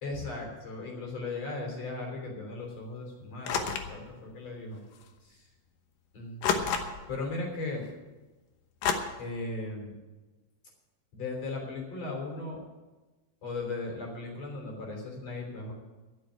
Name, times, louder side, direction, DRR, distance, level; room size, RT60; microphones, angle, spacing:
voice 1, 0.0-4.8 5.2-5.5 6.1-6.6 7.1-7.8 9.2-9.9 11.1-12.6 13.4-15.7, left 3 dB, 50° left, 0 dB, 4.3 m, -37 dB
sound 1, 3.4-4.0 5.0-5.1 6.4-7.2 8.8-8.9, left 7 dB, 80° left, 2.8 m, -29 dB
12.5 x 7.2 x 9.6 m, 1.2 s
omnidirectional pair, 3.9 m